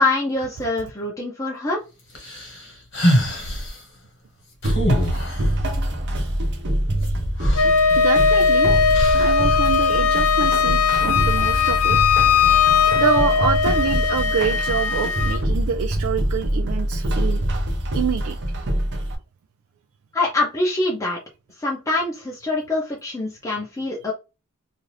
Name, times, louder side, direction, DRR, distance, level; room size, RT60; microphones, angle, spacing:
voice 1, 0.0-1.8 20.1-21.2 21.6-24.1, left 2 dB, 15° left, 0.6 m, -24 dB
sound 1, 2.2-3.8 4.6-5.6 7.1-7.2 7.4-8.4 8.9-9.5, equal, 55° left, 1.2 m, -23 dB
sound 2, 4.6-19.2, right 1 dB, 55° right, 0.7 m, -24 dB
Wind instrument woodwind instrument, 7.5-15.4, left 6 dB, 70° left, 0.4 m, -19 dB
voice 2, 8.0-8.7 9.2-12.0 12.9-17.4 17.9-18.4, right 7 dB, 85° right, 0.3 m, -26 dB
2.5 x 2.5 x 3.2 m
head